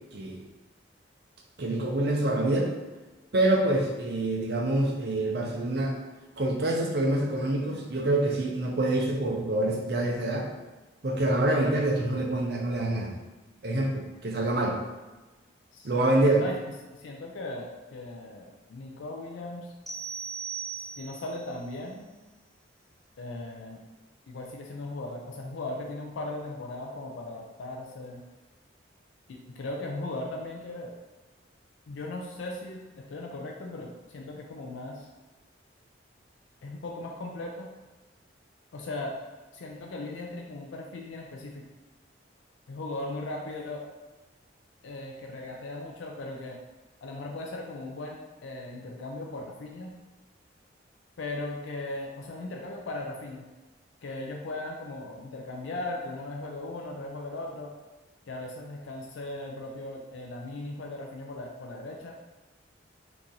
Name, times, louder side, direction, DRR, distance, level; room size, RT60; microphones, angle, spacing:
voice 1, 1.6-2.7 3.3-5.9 6.4-10.5 11.0-13.1 13.6-14.8 15.8-16.4, right 1 dB, 55° right, 0 dB, 0.6 m, -26 dB
voice 2, 15.7-16.6 16.9-19.7 20.8-22.0 23.2-23.8 24.3-28.2 29.3-30.9 31.9-35.1 36.6-37.7 38.7-39.2 39.5-41.6 42.7-43.9 44.8-46.6 47.0-49.9 51.2-53.5 54.0-57.7 58.3-62.1, left 2 dB, 80° left, 0 dB, 0.4 m, -38 dB
sound 1, 19.9-21.4, right 6 dB, ahead, 0.3 m, -37 dB
2.9 x 2.6 x 3.7 m, 1.2 s
head